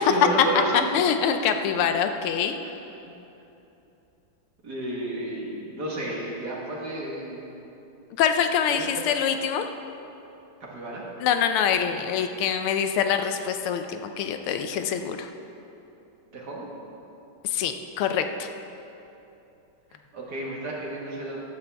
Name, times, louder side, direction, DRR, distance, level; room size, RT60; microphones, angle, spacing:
voice 1, 0.0-0.9 1.2-1.3 4.6-7.6 8.7-9.0 10.6-11.0 16.3-16.7 19.9-21.4, right 2 dB, 50° right, -3 dB, 2.1 m, -32 dB
voice 2, 0.7-2.5 8.2-9.7 11.2-15.3 17.4-18.5, left 8 dB, 85° left, 7 dB, 1.6 m, -25 dB
14.5 x 11.0 x 3.5 m, 2.9 s
omnidirectional pair, 2.4 m